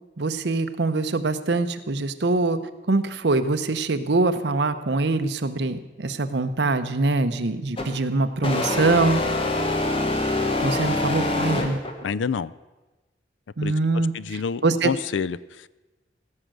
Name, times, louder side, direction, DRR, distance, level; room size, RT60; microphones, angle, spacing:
voice 1, 0.2-2.6 2.9-9.2 10.6-11.8 13.6-14.1 14.6-14.9, right 3 dB, 70° right, 10 dB, 0.8 m, -23 dB
sound 1, 7.8-8.0 8.4-12.0, left 2 dB, 30° left, 1.3 m, -25 dB
voice 2, 12.0-12.5 13.6-15.7, left 6 dB, 85° left, 18 dB, 0.4 m, -28 dB
16.5 x 6.5 x 7.6 m, 1.2 s
head